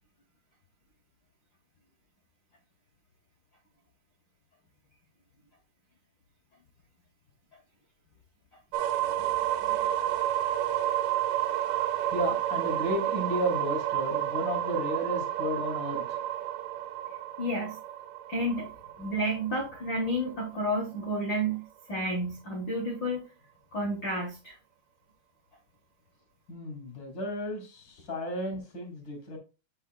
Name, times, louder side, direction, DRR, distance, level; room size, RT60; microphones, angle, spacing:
sound 1, 8.7-20.5, right 13 dB, 80° right, 1.9 m, -31 dB
voice 1, 12.1-16.2 26.5-29.4, equal, 35° left, 2.6 m, -33 dB
voice 2, 17.4-17.8 18.3-18.7 19.0-21.6 21.9-23.2 23.7-24.6, equal, 85° left, 1.0 m, -31 dB
8.1 x 5.5 x 2.3 m
omnidirectional pair, 4.3 m